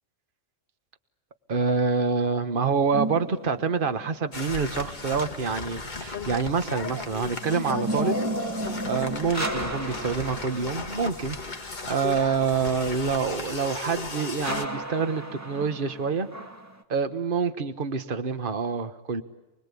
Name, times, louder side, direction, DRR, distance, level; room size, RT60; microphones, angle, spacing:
voice 1, 1.5-8.2 8.9-16.3 16.9-19.2, right 5 dB, 45° right, 9 dB, 1.4 m, -27 dB
sound 1, 2.9-4.2 6.7-11.6 14.4-16.8, right 1 dB, 15° right, 1.9 m, -33 dB
sound 2, 4.3-14.6, left 3 dB, 35° left, 1.9 m, -36 dB
29.0 x 20.5 x 8.5 m, 1.1 s
omnidirectional pair, 1.3 m